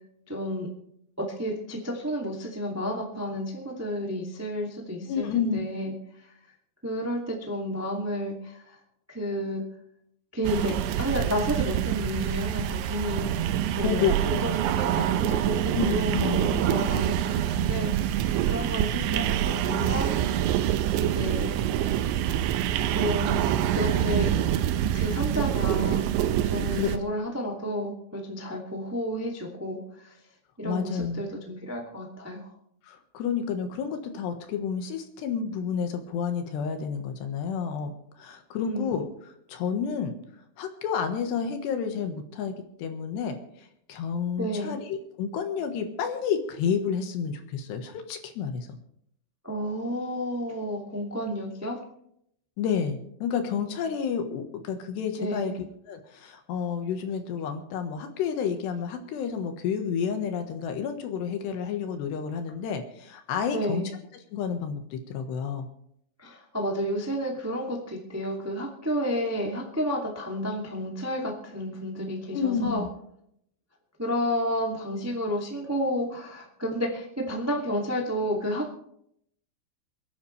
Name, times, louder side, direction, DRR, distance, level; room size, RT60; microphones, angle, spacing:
voice 1, 0.3-0.7 1.2-5.9 6.8-8.8 9.1-9.6 10.3-20.7 21.0-21.5 22.9-23.4 23.7-24.3 24.9-26.0 26.4-30.1 30.6-32.5 38.6-39.0 44.4-44.7 49.4-51.8 55.2-55.5 63.5-63.9 66.2-72.8 74.0-78.8, equal, 15° right, -1 dB, 0.5 m, -31 dB
voice 2, 5.1-5.6 13.8-14.1 15.7-16.4 26.7-26.9 30.7-31.2 32.8-37.9 38.2-40.1 40.6-42.5 42.8-48.8 52.6-63.8 64.3-65.7 72.3-72.9, left 7 dB, 70° left, 6 dB, 3.4 m, -30 dB
sound 1, 10.4-27.0, right 11 dB, 85° right, 3.2 m, -26 dB
28.5 x 10.5 x 3.3 m, 0.72 s
omnidirectional pair, 5.3 m